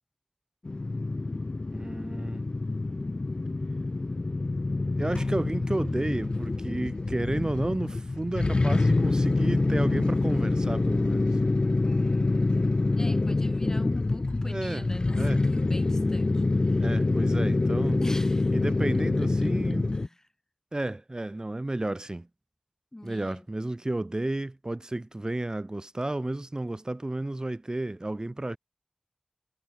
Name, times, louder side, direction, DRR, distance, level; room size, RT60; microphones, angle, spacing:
sound 1, 0.6-20.1, left 2 dB, 50° left, 0.4 m, -26 dB
voice 1, 1.7-2.4 5.0-11.3 14.4-14.9 15.1-15.4 16.7-18.0 18.5-19.9 20.7-22.3 23.0-28.6, right 2 dB, 35° right, 1.3 m, -32 dB
sound 2, 5.1-7.0, left 3 dB, 70° left, 2.7 m, -44 dB
voice 2, 11.8-16.9 18.0-18.5 19.2-20.1 22.9-23.5, left 1 dB, 25° left, 2.3 m, -41 dB
wide cardioid pair, 65°, 2 cm